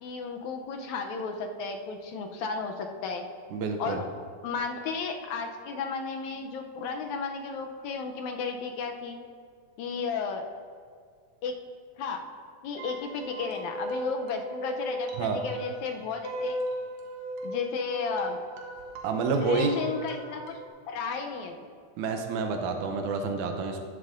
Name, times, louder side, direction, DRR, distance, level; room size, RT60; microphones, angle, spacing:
voice 1, 0.0-3.3 3.8-4.1 4.4-9.2 9.8-10.4 11.4-11.6 12.0-12.2 12.6-16.6 17.4-18.4 19.4-20.6 20.9-21.6, left 5 dB, 80° left, 4 dB, 1.9 m, -33 dB
voice 2, 3.5-4.0 15.2-15.4 19.0-19.7 22.0-23.9, right 4 dB, 85° right, 5 dB, 2.1 m, -28 dB
sound 1, 12.8-20.7, equal, 65° right, 1.9 m, -36 dB
13.0 x 11.0 x 2.5 m, 2.1 s
omnidirectional pair, 3.6 m